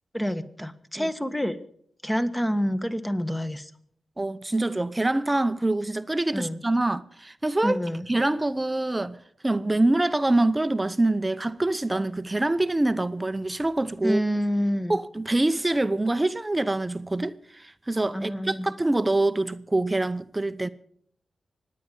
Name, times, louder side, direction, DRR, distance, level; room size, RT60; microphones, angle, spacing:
voice 1, 0.1-1.6 2.0-3.7 6.3-6.6 7.6-8.1 14.0-15.0 18.1-18.7, equal, 10° left, 1.5 m, -27 dB
voice 2, 4.2-7.8 8.1-9.2 9.4-14.2 14.9-20.7, right 2 dB, 20° right, 0.8 m, -25 dB
24.5 x 9.7 x 5.4 m
cardioid pair, 50°, 0 cm